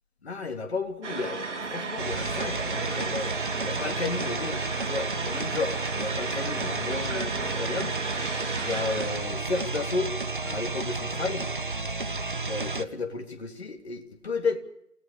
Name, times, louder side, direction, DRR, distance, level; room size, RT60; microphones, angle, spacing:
voice 1, 0.2-3.4 3.6-8.0 8.6-10.1 10.4-11.5 12.5-14.6, left 4 dB, 40° left, 4 dB, 3.2 m, -33 dB
sound 1, 1.0-9.3, right 4 dB, 45° right, 3.5 m, -34 dB
sound 2, 2.0-12.9, right 3 dB, 30° right, 0.9 m, -32 dB
29.0 x 18.5 x 7.0 m, 0.77 s
figure-of-eight pair, 160°, 47 cm